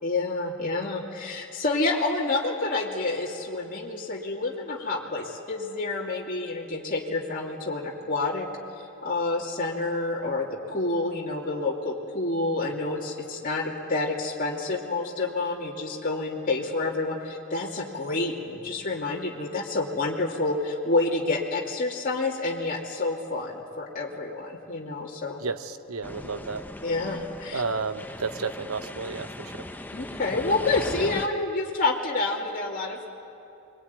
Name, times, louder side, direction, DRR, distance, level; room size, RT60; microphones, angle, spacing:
voice 1, 0.0-8.5 9.0-25.4 26.8-27.6 29.9-33.1, left 3 dB, 40° left, -4 dB, 2.7 m, -28 dB
voice 2, 25.4-26.6 27.5-29.7, right 4 dB, 80° right, 9 dB, 1.0 m, -32 dB
sound 1, 26.0-31.3, left 1 dB, 10° left, 0.8 m, -39 dB
25.0 x 22.5 x 9.6 m, 2.7 s
head